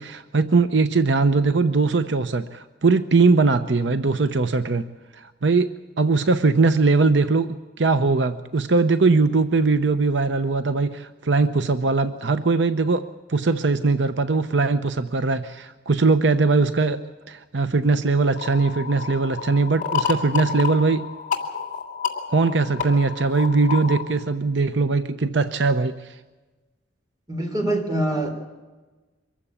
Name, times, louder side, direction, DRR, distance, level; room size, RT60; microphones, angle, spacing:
voice 1, 0.0-4.9 5.1-17.0 17.3-21.1 22.3-26.2, right 3 dB, 75° right, 11 dB, 0.8 m, -21 dB
sound 1, 18.4-24.0, left 7 dB, 45° left, 2.8 m, -30 dB
voice 2, 27.3-28.3, right 1 dB, 20° right, 4 dB, 3.6 m, -24 dB
24.0 x 15.0 x 8.7 m, 1.2 s
head